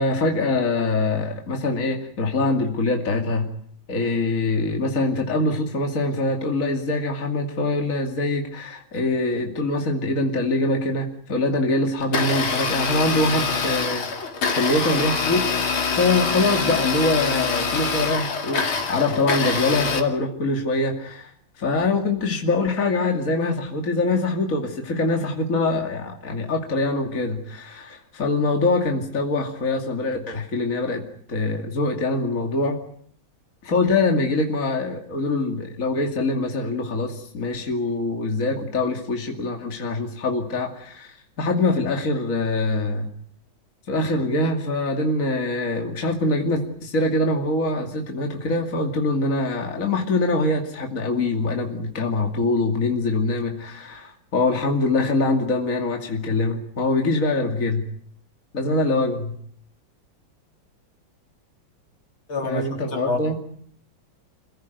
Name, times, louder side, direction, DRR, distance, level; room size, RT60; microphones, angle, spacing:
voice 1, 0.0-3.5 3.9-14.1 14.5-15.7 16.0-21.3 21.6-31.0 31.3-32.8 33.6-43.1 43.9-57.9 58.5-59.3 62.4-63.4, left 2 dB, 40° left, 2 dB, 2.9 m, -24 dB
Domestic sounds home sounds, 12.0-20.0, left 5 dB, 90° left, 3.3 m, -25 dB
voice 2, 62.3-62.6 62.9-63.4, left 3 dB, 70° left, 2 dB, 4.8 m, -27 dB
27.0 x 16.5 x 9.3 m, 0.63 s
omnidirectional pair, 2.2 m